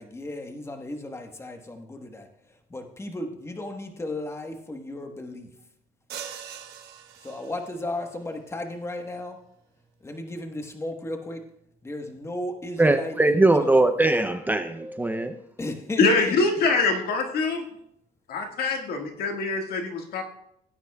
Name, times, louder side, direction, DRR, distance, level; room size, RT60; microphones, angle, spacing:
voice 1, 0.0-2.3 2.7-5.5 7.2-9.4 10.0-11.5 11.8-13.8 15.6-16.3, left 1 dB, 15° left, 4 dB, 1.2 m, -35 dB
sound 1, 6.1-7.9, right 9 dB, 75° right, 1.2 m, -41 dB
voice 2, 12.8-15.3, right 2 dB, 10° right, 7 dB, 0.6 m, -21 dB
voice 3, 16.0-17.6 18.3-20.2, left 3 dB, 65° left, 3 dB, 1.8 m, -24 dB
17.5 x 9.0 x 2.3 m, 0.75 s
cardioid pair, 110°, 17 cm